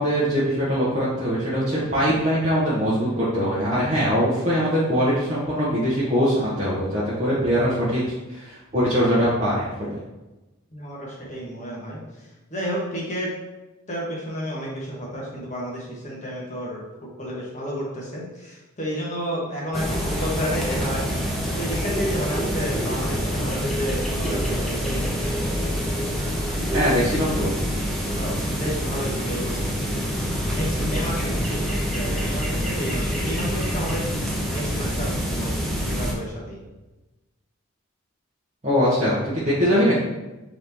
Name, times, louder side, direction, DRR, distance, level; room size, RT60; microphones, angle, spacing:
voice 1, 0.0-8.0 8.3-9.9 26.7-27.5 38.6-40.0, equal, 30° right, -9 dB, 0.7 m, -22 dB
voice 2, 10.7-13.3 13.9-21.1 21.6-25.2 28.1-29.9 30.5-36.6, equal, 35° left, -4 dB, 1.0 m, -31 dB
sound 1, 19.7-36.1, equal, ahead, 0.5 m, -26 dB
3.9 x 3.0 x 3.4 m, 1.1 s
head